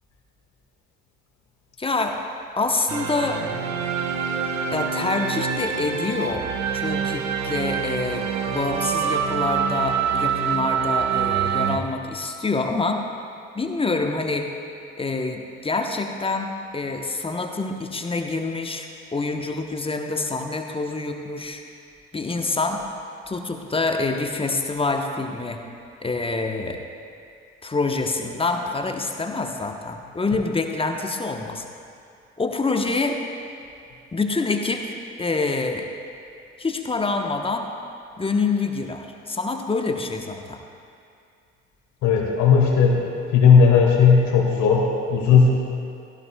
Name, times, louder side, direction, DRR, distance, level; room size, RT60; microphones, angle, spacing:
voice 1, 1.8-2.2 2.6-3.4 4.7-6.5 6.7-13.0 13.5-14.5 15.0-21.6 22.1-22.8 23.3-25.6 26.0-26.8 27.6-31.6 32.4-33.2 34.1-35.9 36.6-37.7 38.2-40.6, left 3 dB, 15° left, 4 dB, 1.0 m, -26 dB
sound 1, 2.9-11.8, right 7 dB, 45° right, 1.0 m, -25 dB
voice 2, 42.0-43.0 43.3-45.5, left 6 dB, 50° left, 0 dB, 1.9 m, -16 dB
16.5 x 14.5 x 2.3 m, 2.4 s
figure-of-eight pair, 55°, 38 cm